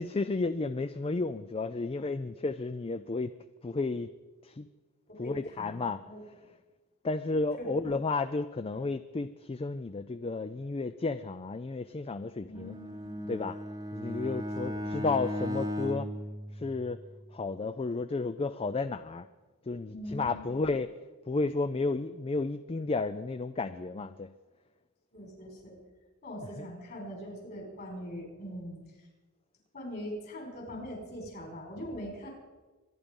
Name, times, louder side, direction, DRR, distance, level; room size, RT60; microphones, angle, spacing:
voice 1, 0.0-3.3 3.6-4.1 4.4-4.7 5.2-6.3 7.0-12.7 13.3-13.6 13.9-16.1 16.5-17.0 17.3-19.3 19.7-20.9 21.3-24.3 26.6-26.7, left 3 dB, 25° left, 13 dB, 0.4 m, -32 dB
voice 2, 5.1-6.2 7.6-7.8 12.4-13.3 14.6-15.1 19.9-20.4 25.1-25.8 26.2-28.8 29.7-32.3, equal, 45° left, 1 dB, 5.2 m, -42 dB
Bowed string instrument, 12.6-17.2, left 1 dB, 15° right, 1.0 m, -37 dB
25.0 x 10.0 x 5.3 m, 1.3 s
head